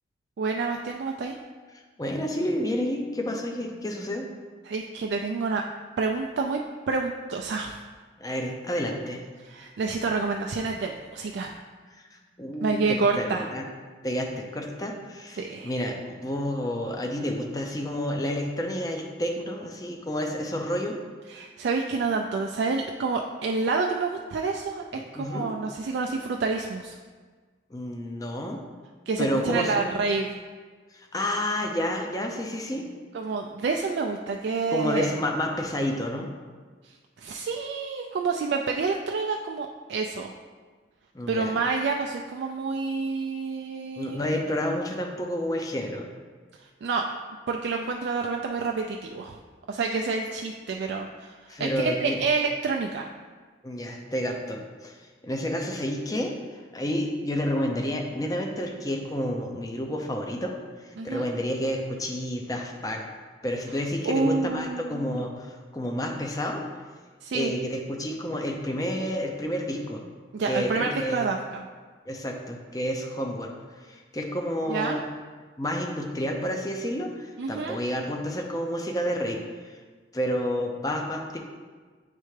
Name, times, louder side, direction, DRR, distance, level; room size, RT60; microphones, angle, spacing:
voice 1, 0.4-1.4 4.7-5.6 6.0-6.6 6.9-7.8 9.4-11.6 12.6-13.4 15.4-15.7 21.3-27.0 29.1-30.4 33.1-35.1 36.8-40.3 41.3-44.2 46.8-47.0 47.5-49.4 49.7-53.1 61.0-61.3 64.1-65.2 67.2-67.5 70.3-71.6 74.7-75.0 77.4-77.8, right 4 dB, 70° right, 2 dB, 0.3 m, -28 dB
voice 2, 2.0-4.3 8.2-9.2 11.9-13.7 14.0-21.0 24.9-25.5 27.7-28.6 29.2-29.9 30.9-32.9 34.7-36.3 41.1-41.5 44.0-46.1 51.5-52.2 53.6-60.5 60.8-63.0 63.4-66.6 67.3-70.0 70.5-71.3 72.1-75.0 75.6-79.4 79.6-79.8 80.1-81.4, equal, 20° left, 2 dB, 0.5 m, -30 dB
9.1 x 3.3 x 3.2 m, 1.5 s
head